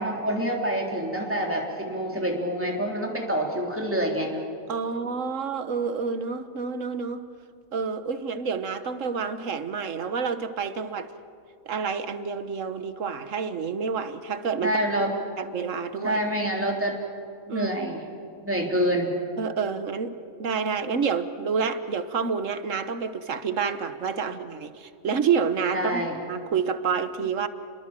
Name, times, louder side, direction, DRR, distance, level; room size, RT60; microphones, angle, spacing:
voice 1, 0.0-4.3 14.6-15.1 16.0-17.0 17.5-18.0 18.4-19.2 25.7-26.2, equal, 10° right, 0 dB, 3.5 m, -27 dB
voice 2, 4.7-7.3 7.7-11.1 11.6-14.8 15.4-16.2 17.5-17.7 19.4-26.0 26.3-27.5, right 6 dB, 60° right, 11 dB, 1.5 m, -28 dB
29.5 x 22.0 x 7.5 m, 2.5 s
omnidirectional pair, 1.5 m